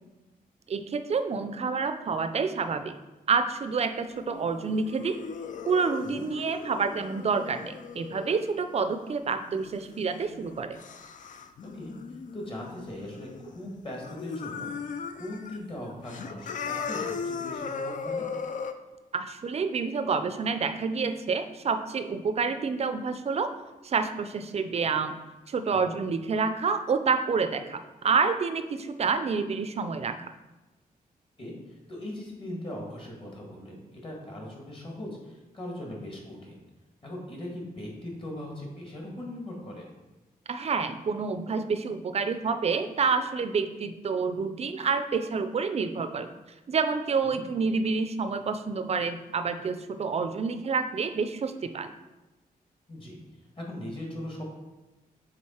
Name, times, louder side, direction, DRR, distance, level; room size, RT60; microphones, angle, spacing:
voice 1, 0.7-2.9 3.3-5.2 5.7-10.8 19.1-23.5 23.8-25.2 25.5-30.3 40.5-46.3 46.7-51.9, right 5 dB, 45° right, 9 dB, 0.4 m, -28 dB
sound 1, 4.0-13.6 13.9-15.6 15.9-18.7, left 5 dB, 55° left, 0.4 m, -38 dB
voice 2, 11.6-11.9 12.3-18.3 25.7-26.0 31.4-36.6 37.0-39.9 47.3-47.5 52.9-53.2 53.6-54.4, left 1 dB, 35° left, -2 dB, 1.7 m, -40 dB
6.4 x 3.8 x 4.3 m, 1.1 s
wide cardioid pair, 125°, 15 cm